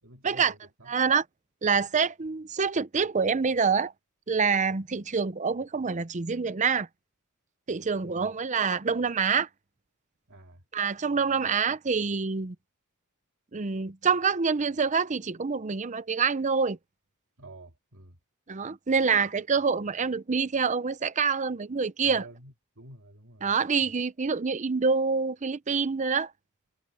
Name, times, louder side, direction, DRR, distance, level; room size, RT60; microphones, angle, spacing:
voice 1, 0.0-1.0 8.0-8.3 10.3-10.7 17.4-18.2 22.0-23.5 23.8-23.9, right 2 dB, 65° right, 3.1 m, -49 dB
voice 2, 0.9-1.2 1.6-3.9 4.3-6.9 7.7-9.5 10.7-12.5 13.5-16.8 18.5-22.2 23.4-26.3, right 5 dB, 35° right, 0.7 m, -26 dB
head